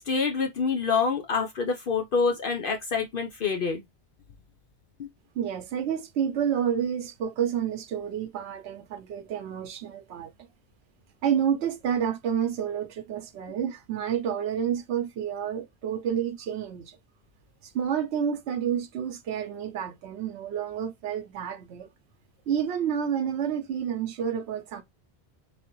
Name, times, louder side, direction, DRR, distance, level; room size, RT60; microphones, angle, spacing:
voice 1, 0.0-3.8 5.0-5.1, left 5 dB, 60° left, 0.8 m, -26 dB
voice 2, 5.4-10.3 11.2-17.0 17.7-21.9 22.5-24.8, right 8 dB, 90° right, 0.9 m, -29 dB
4.0 x 3.3 x 3.0 m
omnidirectional pair, 1.1 m